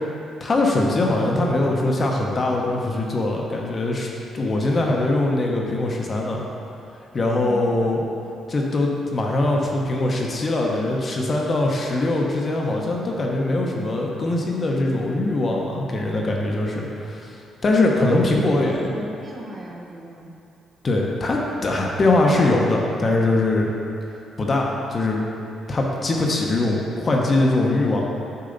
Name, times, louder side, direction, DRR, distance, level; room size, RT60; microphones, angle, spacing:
voice 1, 0.4-4.1 4.3-6.4 7.1-8.0 8.5-17.3 17.6-18.7 20.8-23.7 24.4-25.2 25.7-28.0, left 2 dB, 40° left, -1 dB, 0.9 m, -22 dB
voice 2, 7.4-7.8 18.0-18.2 18.5-20.3, equal, 40° right, -2 dB, 1.0 m, -36 dB
6.6 x 4.7 x 4.0 m, 2.7 s
cardioid pair, 90°, 0 cm